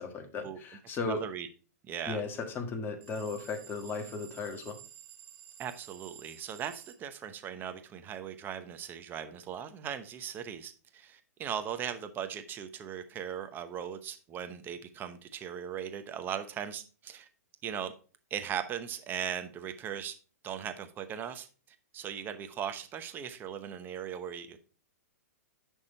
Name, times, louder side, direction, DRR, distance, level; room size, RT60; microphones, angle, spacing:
voice 1, 0.0-1.2 2.1-4.8, left 4 dB, 25° left, 1.5 m, -36 dB
voice 2, 1.0-1.5 1.9-2.2 5.6-17.3 17.6-17.9 18.3-20.1 20.4-21.5 21.9-24.6, right 8 dB, 20° right, 0.9 m, -38 dB
sound 1, 3.0-7.0, right 11 dB, 50° right, 2.0 m, -52 dB
10.5 x 3.6 x 4.4 m
hypercardioid pair, 135°, 9 cm